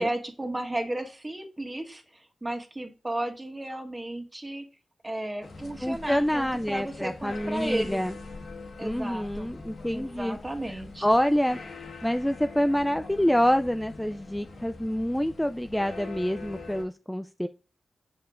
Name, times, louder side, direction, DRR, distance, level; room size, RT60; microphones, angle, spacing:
voice 1, 0.0-2.0 2.4-4.6 5.0-8.0 8.8-9.5 9.9-11.1, right 1 dB, 25° right, 3 dB, 1.7 m, -33 dB
sound 1, 5.4-16.8, left 3 dB, 75° left, 1.5 m, -43 dB
voice 2, 5.8-8.2 8.8-10.4 10.6-11.6 12.0-17.5, equal, 5° left, 8 dB, 0.4 m, -27 dB
6.8 x 5.5 x 2.5 m, 0.32 s
cardioid pair, 50°, 0 cm